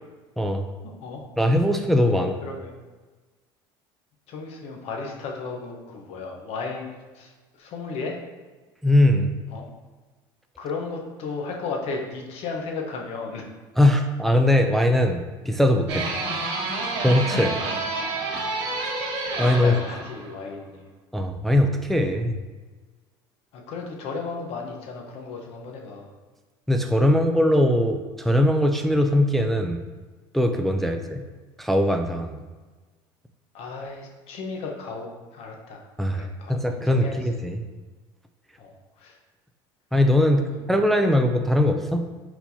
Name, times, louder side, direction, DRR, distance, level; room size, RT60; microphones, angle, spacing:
voice 1, 1.4-2.4 8.8-9.3 13.8-16.1 17.0-17.6 19.4-19.7 21.1-22.4 26.7-29.8 30.3-31.2 31.6-32.4 36.0-37.6 39.9-40.4 40.7-42.0, left 1 dB, ahead, 4 dB, 0.3 m, -21 dB
voice 2, 2.1-2.7 4.3-8.2 9.5-9.7 10.6-13.5 19.5-20.9 23.5-26.1 30.8-30.9 33.5-35.8 36.1-37.2 38.6-39.2 40.3-40.7, left 4 dB, 60° left, 1 dB, 0.9 m, -35 dB
sound 1, 15.9-20.4, right 3 dB, 65° right, 1.2 m, -29 dB
4.4 x 4.1 x 2.7 m, 1.3 s
supercardioid pair, 95°, 12 cm